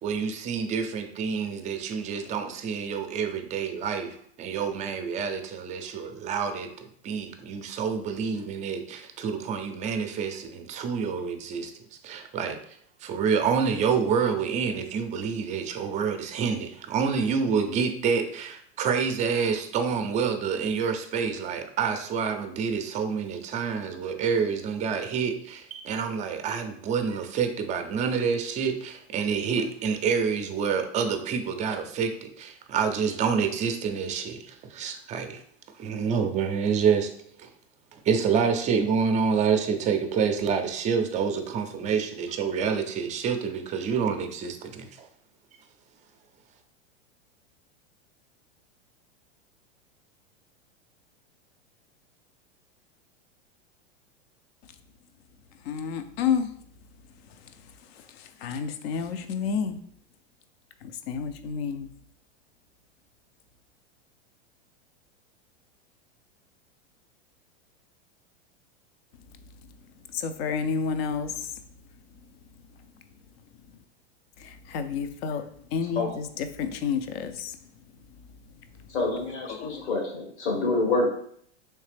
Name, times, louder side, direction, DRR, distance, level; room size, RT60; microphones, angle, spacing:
voice 1, 0.0-11.7 12.0-12.6 13.0-35.4 35.8-37.1 37.4-37.5 38.1-45.1, right 6 dB, 20° right, 0.4 m, -27 dB
voice 2, 55.7-56.5 58.4-59.8 60.8-61.9 70.1-71.3 74.4-77.6 79.5-79.9, left 6 dB, 60° left, 0.6 m, -30 dB
voice 3, 78.9-81.1, left 3 dB, 80° left, 1.5 m, -27 dB
3.2 x 3.1 x 3.3 m
hypercardioid pair, 115°, 34 cm